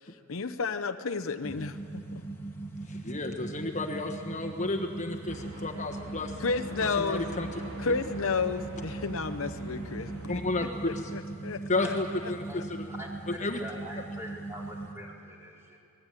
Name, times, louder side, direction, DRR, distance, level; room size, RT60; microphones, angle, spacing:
voice 1, 0.1-2.2 6.4-7.2 7.8-11.9 12.2-12.6, left 4 dB, 65° left, 9 dB, 0.8 m, -32 dB
sound 1, 1.4-14.9, right 2 dB, 10° left, 2.6 m, -40 dB
voice 2, 2.9-6.4 7.0-7.5 10.3-11.1 11.7-12.8 13.4-13.6, left 2 dB, 35° left, 2 dB, 1.4 m, -32 dB
sound 2, 5.3-10.4, right 1 dB, 75° right, 4.4 m, -44 dB
voice 3, 12.9-15.8, equal, 10° right, -3 dB, 4.4 m, -44 dB
26.5 x 19.5 x 9.1 m, 2.5 s
head